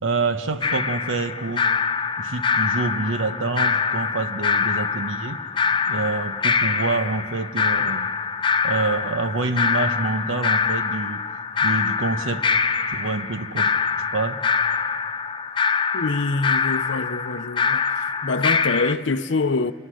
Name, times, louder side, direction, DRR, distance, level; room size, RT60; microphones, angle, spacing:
voice 1, 0.0-1.7 2.2-5.4 5.9-8.1 8.6-11.2 11.6-12.5 12.9-13.7 14.1-14.4, right 3 dB, 90° right, 1.1 m, -26 dB
sound 1, 0.6-18.9, left 5 dB, 25° left, 0.6 m, -24 dB
voice 2, 15.9-17.8 18.2-19.7, left 3 dB, 70° left, 0.6 m, -25 dB
29.0 x 27.5 x 6.4 m
head